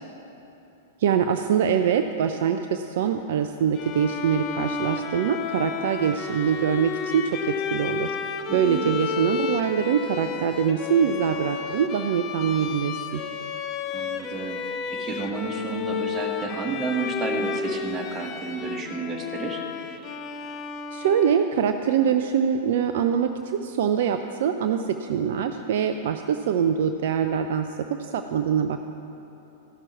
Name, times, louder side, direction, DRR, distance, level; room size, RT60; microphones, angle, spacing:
voice 1, 1.0-8.2 8.5-13.2 20.9-27.7 28.0-28.8, right 8 dB, 60° right, 7 dB, 0.4 m, -24 dB
Bowed string instrument, 3.7-21.6, left 6 dB, 35° left, 0.5 m, -32 dB
voice 2, 8.5-8.9 13.9-19.6, right 4 dB, 30° right, 1 dB, 1.4 m, -31 dB
15.0 x 6.0 x 4.5 m, 2.9 s
hypercardioid pair, 100°, 0 cm